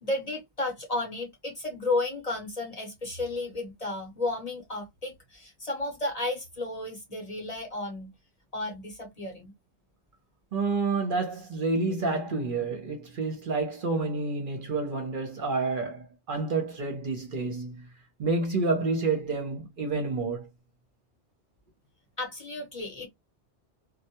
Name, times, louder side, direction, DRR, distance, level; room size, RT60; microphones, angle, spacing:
voice 1, 0.0-8.1 8.5-9.5 22.2-23.1, left 2 dB, 40° left, 0.7 m, -33 dB
voice 2, 10.5-17.9 18.2-20.5, right 3 dB, 55° right, 0.7 m, -29 dB
2.2 x 2.1 x 2.8 m
omnidirectional pair, 1.2 m